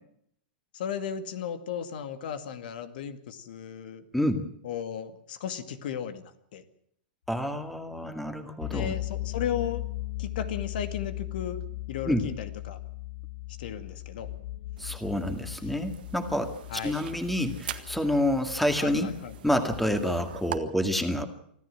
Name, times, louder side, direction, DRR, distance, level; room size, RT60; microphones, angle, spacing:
voice 1, 0.7-4.0 4.6-6.6 8.7-9.8 10.2-11.6 11.9-12.8 13.6-14.3 16.7-17.0 18.8-19.4, left 8 dB, 70° left, 9 dB, 2.3 m, -35 dB
voice 2, 4.1-4.5 7.3-8.9 12.1-12.3 14.8-16.5 16.8-19.1 19.4-21.3, left 1 dB, ahead, 7 dB, 2.1 m, -28 dB
sound 1, 8.6-20.6, left 17 dB, 90° left, 7.9 m, -38 dB
sound 2, 14.8-20.6, right 12 dB, 75° right, 1.7 m, -43 dB
25.5 x 14.0 x 7.6 m, 0.68 s
hypercardioid pair, 130°, 5 cm